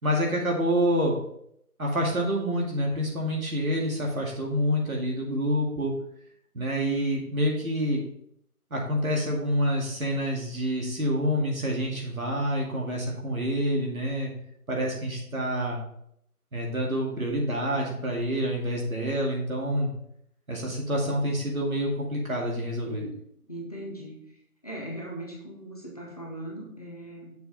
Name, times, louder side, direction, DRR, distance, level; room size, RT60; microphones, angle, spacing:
voice 1, 0.0-1.2 1.8-5.9 6.5-8.0 8.7-14.3 14.7-15.8 16.5-19.9 20.5-23.0, equal, 65° right, -1 dB, 2.4 m, -27 dB
voice 2, 22.8-23.2 23.5-24.4 24.6-27.3, right 1 dB, 25° left, -3 dB, 0.9 m, -39 dB
6.7 x 5.0 x 4.1 m, 0.72 s
figure-of-eight pair, 165°, 46 cm